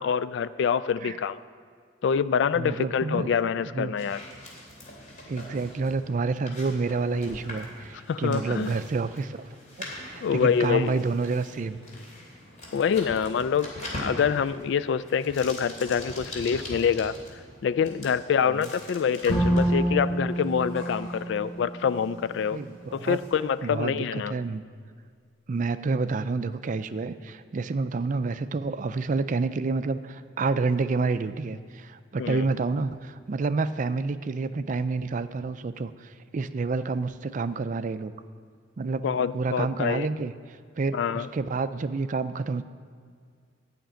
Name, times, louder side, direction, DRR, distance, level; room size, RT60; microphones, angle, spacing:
voice 1, 0.0-1.4 2.0-4.2 8.1-8.7 10.2-11.0 12.7-17.1 17.6-22.6 22.9-24.3 32.2-32.5 39.0-40.1 40.9-41.3, left 7 dB, 65° left, 15 dB, 0.3 m, -26 dB
voice 2, 2.5-3.3 3.7-4.0 5.3-9.5 9.8-11.8 18.5-18.7 22.5-23.2 23.6-24.6 25.5-38.1 38.8-42.6, right 4 dB, 40° right, 12 dB, 0.4 m, -29 dB
sound 1, 4.0-23.7, left 1 dB, 40° left, 2.7 m, -43 dB
Bowed string instrument, 19.3-22.4, right 1 dB, 85° left, 3.1 m, -27 dB
11.5 x 5.9 x 9.0 m, 2.1 s
head